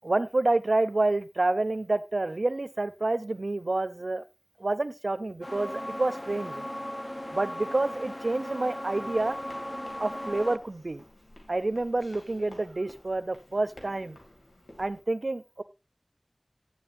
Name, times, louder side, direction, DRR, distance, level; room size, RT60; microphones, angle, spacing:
voice 1, 0.0-4.2 4.6-6.7 7.3-9.4 10.0-11.0 11.5-14.2 14.8-15.6, right 2 dB, 90° right, 13 dB, 0.6 m, -28 dB
sound 1, 5.4-10.6, left 1 dB, 30° left, 0.8 m, -37 dB
sound 2, 9.1-15.0, left 1 dB, 90° left, 2.4 m, -52 dB
11.0 x 8.9 x 2.7 m, 0.27 s
wide cardioid pair, 45°, 0 cm